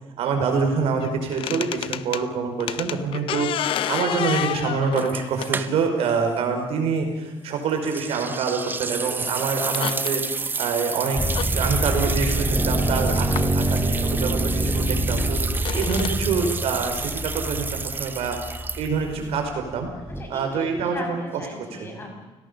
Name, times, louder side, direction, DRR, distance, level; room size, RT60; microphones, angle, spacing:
voice 1, 0.2-3.5 3.9-10.2 10.6-11.2 11.5-15.4 15.7-18.4 18.8-19.9 20.3-21.2 21.8-21.9, right 5 dB, 75° right, 4 dB, 5.1 m, -26 dB
sound 1, 1.0-2.2 2.6-5.8 7.0-7.1 8.7-8.8 9.2-9.3 9.6-10.1 11.3-11.5 13.4-13.5 14.2-14.3 15.5-16.2, left 11 dB, 60° left, 0.8 m, -29 dB
sound 2, 5.0-6.1 6.4-6.5 7.9-19.2, right 4 dB, 20° right, 0.7 m, -30 dB
sound 3, 11.1-20.2, right 1 dB, ahead, 1.9 m, -26 dB
voice 2, 20.1-22.3, left 1 dB, 20° left, 2 dB, 6.3 m, -38 dB
29.5 x 18.0 x 7.1 m, 1.1 s
cardioid pair, 160°, 10 cm